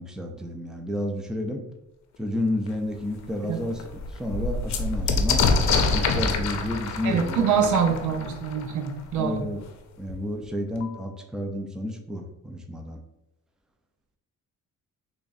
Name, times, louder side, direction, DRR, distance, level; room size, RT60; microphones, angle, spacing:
voice 1, 0.0-1.6 2.2-5.5 5.9-7.7 9.2-9.6 10.0-13.0, left 1 dB, ahead, 3 dB, 0.5 m, -31 dB
sound 1, 2.7-2.8 3.2-3.3 3.6-9.1 10.1-10.2 10.4-11.1, left 4 dB, 65° left, 0.6 m, -26 dB
voice 2, 7.0-9.4, right 7 dB, 75° right, 5 dB, 0.7 m, -24 dB
3.5 x 2.5 x 4.0 m, 0.87 s
cardioid pair, 90°, 30 cm